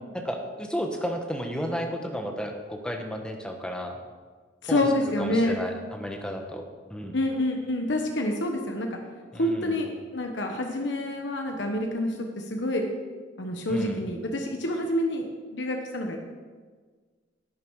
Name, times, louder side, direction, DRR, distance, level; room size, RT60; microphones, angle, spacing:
voice 1, 0.1-4.0 4.7-4.9 5.2-6.6 6.9-7.2 9.3-9.8 13.7-14.0, equal, 5° left, 3 dB, 1.1 m, -33 dB
voice 2, 4.6-5.6 7.1-9.0 9.3-12.8 13.4-15.2 15.5-16.2, left 1 dB, 70° left, 2 dB, 1.1 m, -27 dB
11.0 x 9.3 x 4.7 m, 1.5 s
head